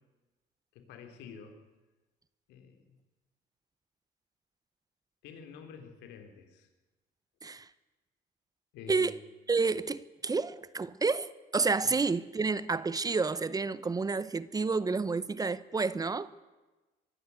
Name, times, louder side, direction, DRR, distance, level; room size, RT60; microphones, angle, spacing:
voice 1, 0.7-1.6 2.5-2.9 5.2-6.7 8.7-9.1 11.8-11.9, left 6 dB, 90° left, 3.4 m, -48 dB
voice 2, 9.5-16.3, right 4 dB, 20° right, 0.8 m, -30 dB
24.0 x 13.0 x 9.4 m
cardioid pair, 110°, 17 cm